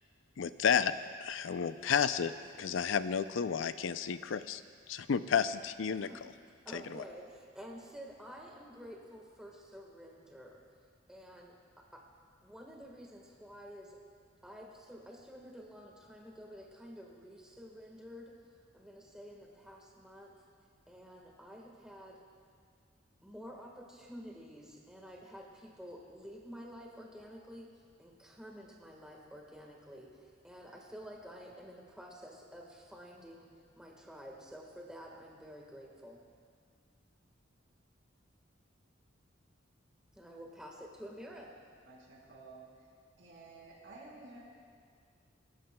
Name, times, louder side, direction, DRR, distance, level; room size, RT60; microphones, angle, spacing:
voice 1, 0.4-0.9 1.2-2.3 2.6-4.6 4.9-6.1 6.7-7.0, left 7 dB, 90° left, 0.5 m, -31 dB
voice 2, 6.6-10.6 11.1-12.0 12.4-14.0 14.4-18.3 18.7-20.3 20.9-22.2 23.2-27.7 28.0-33.5 33.8-36.2 40.1-41.5, equal, 5° right, 1.5 m, -50 dB
voice 3, 41.8-42.7 43.2-44.4, right 3 dB, 75° right, 4.4 m, -52 dB
27.0 x 13.5 x 2.3 m
head